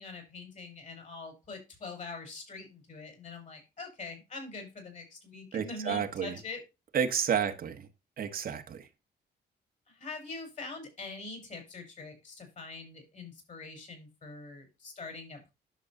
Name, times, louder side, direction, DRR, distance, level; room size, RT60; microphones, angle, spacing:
voice 1, 0.0-6.6 9.9-15.5, left 3 dB, 45° left, 4 dB, 5.0 m, -44 dB
voice 2, 5.5-6.3 6.9-7.8 8.2-8.8, right 7 dB, 55° right, 6 dB, 1.3 m, -30 dB
11.5 x 6.7 x 2.7 m, 0.26 s
cardioid pair, 135°, 18 cm